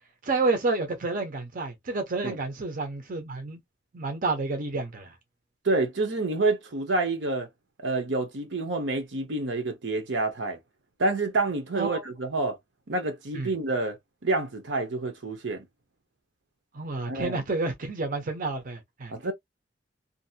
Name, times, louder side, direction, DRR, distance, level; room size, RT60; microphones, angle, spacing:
voice 1, 0.2-3.6 3.9-5.1 11.8-12.0 13.3-13.5 16.7-19.3, right 3 dB, 50° right, 0.7 m, -30 dB
voice 2, 5.6-7.5 7.8-10.6 11.0-12.6 12.9-14.0 14.2-15.6 17.0-17.4 19.1-19.3, right 2 dB, 75° right, 0.9 m, -28 dB
2.6 x 2.6 x 2.7 m
head